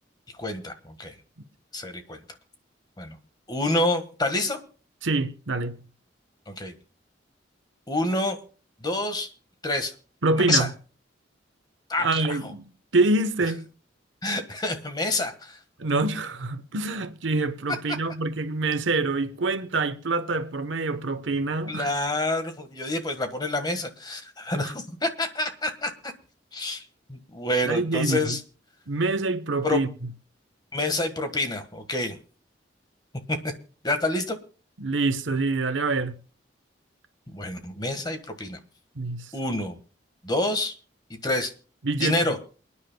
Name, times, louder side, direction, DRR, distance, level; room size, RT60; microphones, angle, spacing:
voice 1, 0.4-1.1 1.7-2.2 3.0-3.2 3.5-4.6 6.5-6.7 7.9-8.4 8.8-9.3 9.6-9.9 10.4-10.7 11.9-12.4 14.2-15.6 21.7-26.1 26.5-26.8 27.1-28.4 29.6-29.8 30.7-32.2 33.3-33.4 33.8-34.4 37.3-38.6 39.3-39.8 40.2-40.7 41.2-41.5 42.0-42.4, left 2 dB, 20° left, 1.5 m, -27 dB
voice 2, 5.0-5.8 10.2-10.7 12.0-13.7 15.8-21.9 24.6-24.7 27.6-28.4 28.9-29.9 34.8-36.2 39.0-39.3 41.8-42.3, right 3 dB, 85° right, 1.0 m, -26 dB
28.5 x 9.8 x 2.2 m
head